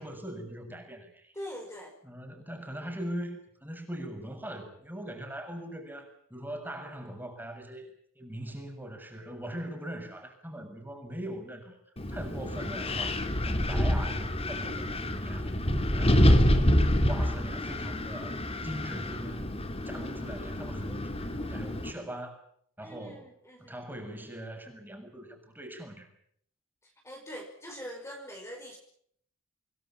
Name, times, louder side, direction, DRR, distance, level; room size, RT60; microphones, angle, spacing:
voice 1, 0.0-1.3 2.0-11.8 12.1-13.2 13.4-15.6 15.9-16.8 17.0-18.4 18.6-22.4 22.8-23.3 23.6-26.1, right 1 dB, 10° right, 4 dB, 6.8 m, -41 dB
voice 2, 1.3-1.9 22.8-23.8 26.8-28.8, equal, 15° left, 1 dB, 5.1 m, -43 dB
Wind, 12.0-21.9, left 1 dB, 30° left, 2.7 m, -27 dB
27.5 x 20.0 x 7.3 m, 0.66 s
head